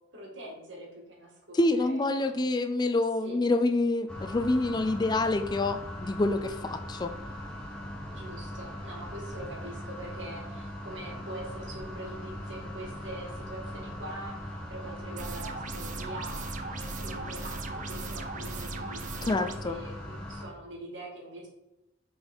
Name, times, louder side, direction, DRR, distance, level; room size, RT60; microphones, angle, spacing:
voice 1, 0.1-2.4 3.2-3.4 8.1-21.5, right 1 dB, 80° right, -1 dB, 2.0 m, -43 dB
voice 2, 1.5-7.1 19.2-19.8, left 2 dB, 25° left, 9 dB, 0.3 m, -27 dB
sound 1, 4.1-20.5, left 1 dB, 5° left, 1.2 m, -40 dB
sound 2, 15.2-19.6, right 4 dB, 40° right, 0.5 m, -39 dB
5.3 x 4.0 x 4.4 m, 0.95 s
head